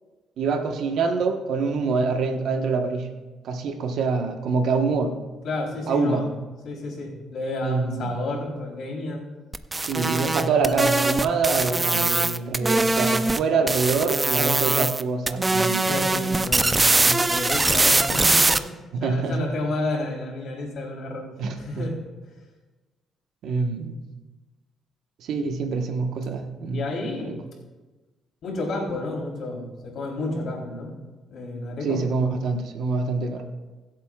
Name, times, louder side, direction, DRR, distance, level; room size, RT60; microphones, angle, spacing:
voice 1, 0.4-3.1 3.4-5.2 5.9-6.3 7.6-8.1 9.8-15.9 17.1-17.2 18.9-19.4 21.4-21.9 23.4-24.1 25.2-26.8 27.2-27.3 31.8-33.4, right 4 dB, 75° right, 5 dB, 1.2 m, -25 dB
voice 2, 5.4-6.3 6.6-9.2 15.9-21.3 21.6-22.0 26.7-27.4 28.4-30.9 31.3-32.0, left 2 dB, 70° left, -2 dB, 3.5 m, -31 dB
sound 1, 9.5-13.4 13.7-15.0 15.3-18.6, right 2 dB, 20° right, 0.5 m, -22 dB
23.5 x 8.2 x 2.4 m, 1.2 s
cardioid pair, 90°, 0 cm